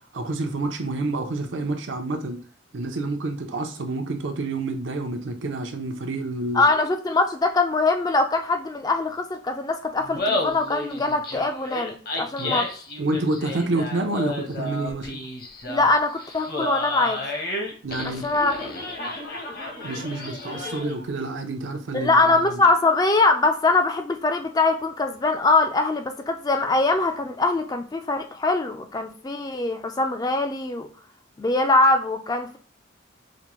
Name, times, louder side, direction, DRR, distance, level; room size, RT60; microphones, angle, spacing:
voice 1, 0.1-2.4 2.7-6.6 12.4-12.6 13.0-15.2 17.8-18.3 19.8-22.1 22.5-22.6, right 2 dB, 80° right, 6 dB, 0.7 m, -28 dB
voice 2, 6.5-12.7 15.7-17.2 18.0-18.5 21.9-30.9 31.4-32.6, left 3 dB, 20° left, 6 dB, 0.4 m, -22 dB
Laughter, 10.0-21.1, left 2 dB, 50° left, 0.9 m, -32 dB
5.0 x 2.2 x 3.0 m, 0.42 s
head